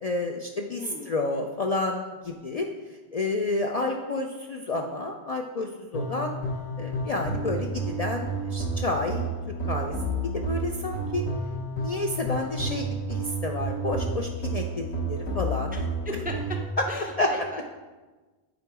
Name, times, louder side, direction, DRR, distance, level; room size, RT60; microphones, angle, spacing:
voice 1, 0.0-6.4 6.8-9.3 9.6-9.9 10.3-11.2 11.8-15.7 17.2-17.3, left 2 dB, 50° left, 2 dB, 0.4 m, -30 dB
voice 2, 0.8-1.1 15.7-16.6 16.9-17.7, left 1 dB, 15° right, 2 dB, 0.4 m, -36 dB
sound 1, 5.9-16.6, right 2 dB, 80° left, 1.4 m, -31 dB
9.0 x 3.9 x 4.7 m, 1.3 s
omnidirectional pair, 1.1 m